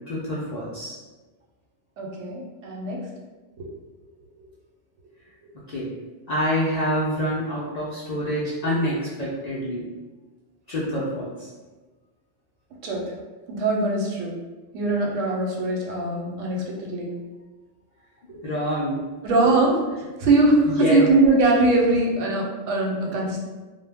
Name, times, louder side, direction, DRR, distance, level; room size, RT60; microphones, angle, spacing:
voice 1, 0.1-1.0 5.7-5.9 6.3-9.9 10.7-11.5 18.4-19.0 20.8-21.1, equal, 85° left, -7 dB, 0.3 m, -26 dB
voice 2, 2.0-3.1 3.6-3.7 12.8-13.1 13.5-14.4 14.7-17.1 18.3-18.4 19.2-19.8 20.2-23.4, right 2 dB, 90° right, -1 dB, 0.9 m, -21 dB
2.1 x 2.0 x 3.3 m, 1.2 s
omnidirectional pair, 1.3 m